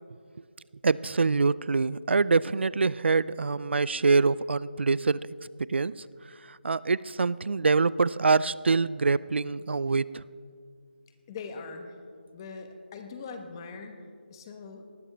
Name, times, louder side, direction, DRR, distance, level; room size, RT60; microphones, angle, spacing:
voice 1, 0.8-5.2 5.7-6.0 6.5-10.2, right 4 dB, 80° right, 20 dB, 0.3 m, -25 dB
voice 2, 11.3-11.9 12.3-14.0 14.3-14.8, left 4 dB, 25° left, 6 dB, 1.1 m, -41 dB
19.0 x 12.5 x 3.4 m, 2.2 s
figure-of-eight pair, 165°, 6 cm